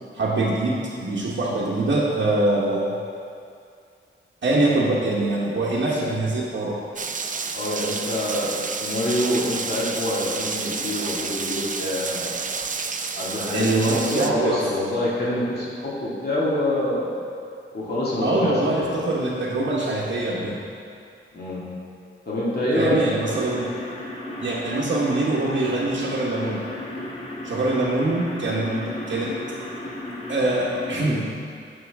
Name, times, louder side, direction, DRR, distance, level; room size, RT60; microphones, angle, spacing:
voice 1, 0.1-2.9 4.4-6.8 13.5-14.6 18.2-20.6 22.7-23.7 24.4-26.6 27.4-29.3 30.3-31.3, right 2 dB, 65° right, -7 dB, 1.2 m, -23 dB
Rain, 7.0-14.3, right 5 dB, 40° right, 0.4 m, -30 dB
voice 2, 7.5-12.4 13.1-17.1 17.7-18.9 21.3-21.7 22.2-23.0, left 1 dB, 50° left, -8 dB, 2.3 m, -26 dB
sound 1, 23.2-31.1, left 1 dB, 30° left, 1.2 m, -34 dB
11.5 x 6.0 x 3.5 m, 2.3 s
wide cardioid pair, 130°, 21 cm